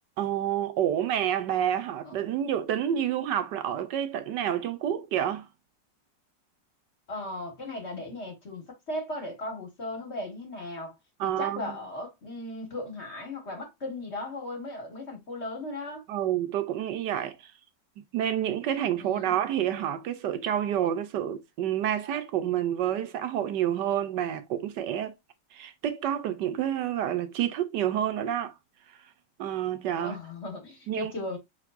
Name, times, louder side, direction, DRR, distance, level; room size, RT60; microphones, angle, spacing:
voice 1, 0.2-5.5 11.2-11.8 16.1-17.5 18.1-25.1 25.5-28.5 29.4-30.2 30.9-31.1, right 10 dB, 75° right, 1.3 m, -29 dB
voice 2, 7.1-10.9 11.2-16.0 19.0-19.3 30.0-31.4, left 2 dB, 40° left, 1.6 m, -37 dB
6.7 x 3.3 x 2.4 m
omnidirectional pair, 2.0 m